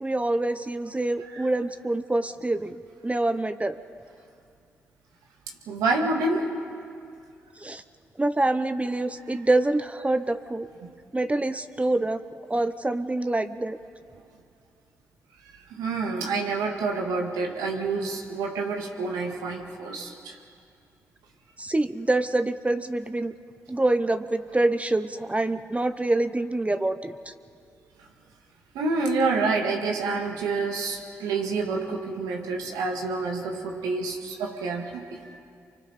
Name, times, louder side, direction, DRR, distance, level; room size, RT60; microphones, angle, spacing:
voice 1, 0.0-2.8 3.0-3.8 7.6-7.8 8.2-10.7 11.1-12.2 12.5-13.8 21.6-23.3 23.7-27.3, right 2 dB, 20° right, 11 dB, 0.8 m, -26 dB
voice 2, 5.7-6.5 10.8-10.9 15.5-20.4 28.0-28.1 28.7-35.4, right 3 dB, 80° right, 2 dB, 2.0 m, -28 dB
28.5 x 24.5 x 4.3 m, 2.3 s
hypercardioid pair, 40°, 6 cm